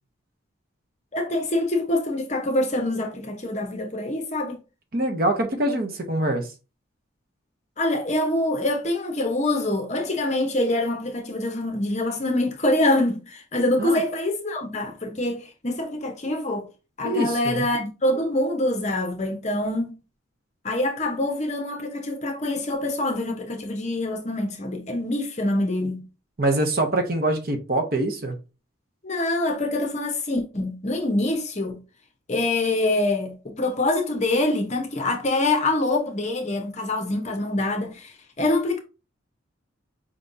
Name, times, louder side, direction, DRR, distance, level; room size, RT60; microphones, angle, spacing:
voice 1, 1.1-4.6 7.8-16.7 17.0-19.9 20.6-26.0 29.0-31.8 32.3-38.8, left 2 dB, 35° left, 0.8 m, -25 dB
voice 2, 4.9-6.5 13.8-14.0 17.0-17.7 26.4-28.4, right 1 dB, 45° right, 0.8 m, -24 dB
5.1 x 3.4 x 2.6 m
head